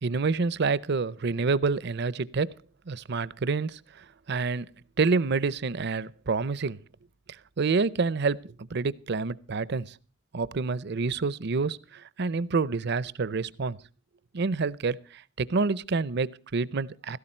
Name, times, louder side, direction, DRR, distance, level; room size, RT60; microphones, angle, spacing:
voice 1, 0.0-2.5 2.9-4.7 5.0-6.8 7.6-9.9 10.3-13.8 14.3-17.2, right 4 dB, 60° right, 0.6 m, -28 dB
16.5 x 14.0 x 4.4 m
head